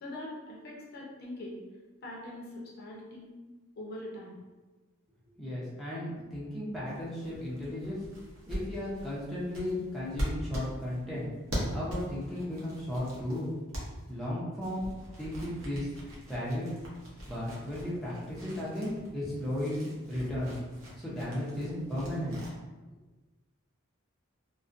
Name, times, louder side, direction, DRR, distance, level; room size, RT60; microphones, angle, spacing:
voice 1, 0.0-1.6 2.0-3.4 3.8-4.4, left 1 dB, 50° left, -4 dB, 0.6 m, -42 dB
voice 2, 5.4-8.0 8.5-11.3 11.7-13.5 14.1-14.9 15.2-15.9 16.3-16.8 17.3-20.5 21.0-22.4, left 1 dB, ahead, -9 dB, 0.5 m, -35 dB
sound 1, 6.8-14.3 14.6-22.5, equal, 75° right, 0.7 m, -41 dB
2.4 x 2.1 x 2.4 m, 1.2 s
head